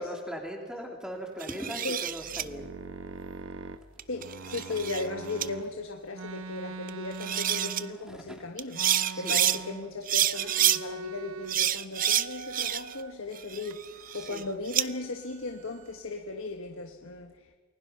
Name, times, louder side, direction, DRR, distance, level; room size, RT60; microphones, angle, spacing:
voice 1, 0.0-2.7 4.1-4.8 6.1-6.2 8.0-8.4 9.1-9.4 14.1-14.5, equal, 5° right, 3.0 m, -40 dB
sound 1, 1.4-2.4 4.0-5.1 5.4-5.5 6.9-7.0 7.2-7.8 8.6-9.6 10.1-10.8 11.5-13.0 13.4-14.9, right 11 dB, 40° right, 0.6 m, -28 dB
sound 2, 2.1-5.7 6.1-8.2 8.7-10.0 10.3-11.6 11.9-13.1 13.6-14.5 14.8-16.0, right 4 dB, 90° right, 1.1 m, -43 dB
voice 2, 4.1-8.9 9.1-17.6, left 3 dB, 85° left, 1.4 m, -37 dB
29.0 x 21.0 x 5.7 m
head